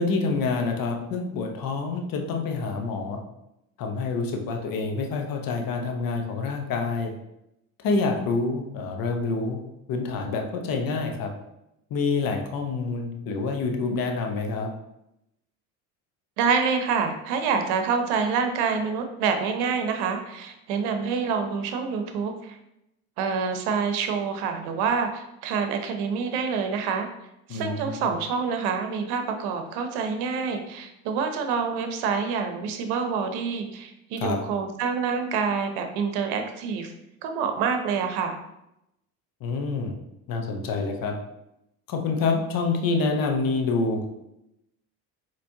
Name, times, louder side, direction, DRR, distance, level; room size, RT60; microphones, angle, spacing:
voice 1, 0.0-3.2 3.8-7.1 7.8-9.6 9.9-11.3 11.9-14.7 27.5-28.1 34.2-34.4 39.4-39.9 40.3-41.1 41.9-44.0, left 4 dB, 55° left, 3 dB, 0.9 m, -27 dB
voice 2, 16.4-22.6 23.2-27.1 27.5-36.9 37.2-38.4, right 5 dB, 70° right, 6 dB, 0.7 m, -27 dB
4.2 x 3.1 x 2.7 m, 0.84 s
hypercardioid pair, 65°, 42 cm